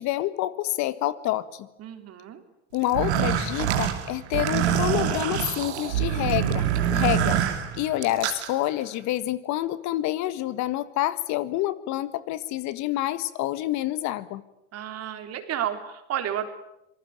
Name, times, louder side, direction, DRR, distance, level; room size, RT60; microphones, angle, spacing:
voice 1, 0.0-1.7 2.7-7.4 7.8-14.4, left 14 dB, 55° left, 14 dB, 1.6 m, -28 dB
voice 2, 1.8-2.4 14.7-16.5, right 10 dB, 50° right, 7 dB, 3.8 m, -31 dB
sound 1, 2.8-8.5, right 10 dB, 80° right, 2.9 m, -25 dB
26.0 x 19.5 x 9.0 m, 0.86 s
hypercardioid pair, 80°, 33 cm